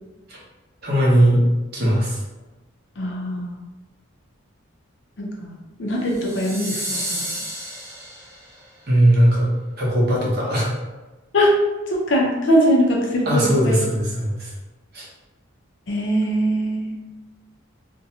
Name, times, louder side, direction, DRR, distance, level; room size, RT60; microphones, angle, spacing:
voice 1, 0.8-1.4 1.7-2.2 8.9-9.5 9.8-10.7 13.2-14.5 14.9-15.1, right 1 dB, 50° right, -5 dB, 0.8 m, -18 dB
voice 2, 3.0-3.6 5.2-7.3 11.3-11.5 11.9-13.8 15.9-16.9, equal, 60° left, -1 dB, 0.5 m, -21 dB
sound 1, 6.1-8.6, right 1 dB, 15° right, 0.3 m, -31 dB
2.6 x 2.1 x 2.7 m, 1.1 s
head